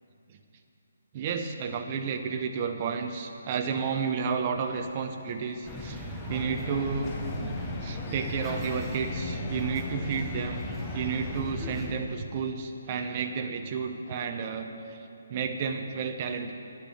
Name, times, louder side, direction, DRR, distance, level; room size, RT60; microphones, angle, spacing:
voice 1, 1.1-10.6 10.9-16.5, right 5 dB, 35° right, 5 dB, 0.8 m, -32 dB
Sliding door / Slam, 3.6-10.6, left 1 dB, 25° left, 3.1 m, -49 dB
sound 1, 5.6-11.9, left 1 dB, 5° left, 1.2 m, -36 dB
sound 2, 6.3-11.4, left 5 dB, 50° left, 0.9 m, -44 dB
10.0 x 9.5 x 7.0 m, 2.7 s
figure-of-eight pair, 145°, 0 cm